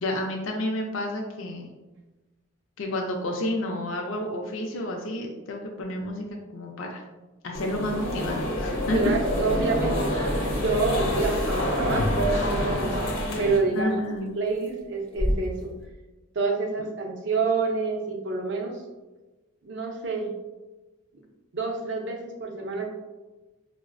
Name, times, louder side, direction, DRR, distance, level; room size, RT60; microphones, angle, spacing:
voice 1, 0.0-1.7 2.8-7.0 7.4-9.0 13.7-14.3, left 1 dB, 70° left, 1 dB, 0.4 m, -30 dB
sound 1, 7.5-13.6, equal, 85° left, 0.8 m, -26 dB
sound 2, 8.9-15.8, equal, 5° left, 0.5 m, -37 dB
voice 2, 8.9-10.3 10.6-13.0 13.4-14.0 14.4-15.7 16.3-18.8 19.6-20.3 21.1-21.2 21.5-22.9, right 3 dB, 55° right, 1 dB, 0.5 m, -28 dB
4.5 x 2.0 x 2.4 m, 1.1 s
head